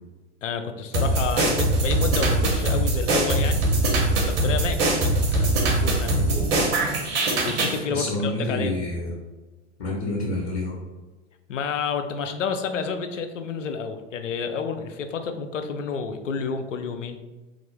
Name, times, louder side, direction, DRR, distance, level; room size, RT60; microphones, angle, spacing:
voice 1, 0.4-6.2 7.4-8.7 11.5-17.2, left 6 dB, 85° left, 7 dB, 0.5 m, -30 dB
sound 1, 0.9-7.8, right 2 dB, 55° right, 1.0 m, -22 dB
voice 2, 7.9-9.1 9.8-10.7, left 1 dB, 60° left, -3 dB, 1.2 m, -28 dB
3.4 x 2.5 x 3.3 m, 1.2 s
figure-of-eight pair, 80°, 36 cm